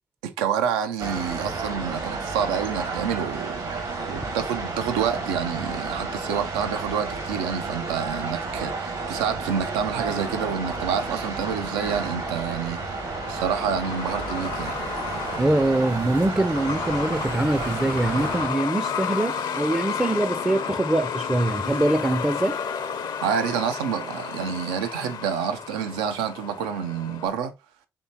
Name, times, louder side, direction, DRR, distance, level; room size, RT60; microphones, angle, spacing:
voice 1, 0.2-12.9 13.3-14.7 23.2-27.5, right 7 dB, 85° right, 0.4 m, -28 dB
sound 1, 1.0-18.5, right 3 dB, 65° right, 1.4 m, -31 dB
Truck, 9.9-27.3, left 6 dB, 65° left, 0.6 m, -33 dB
voice 2, 15.4-22.6, right 1 dB, 10° right, 0.4 m, -23 dB
4.3 x 3.3 x 2.8 m
hypercardioid pair, 40°, 8 cm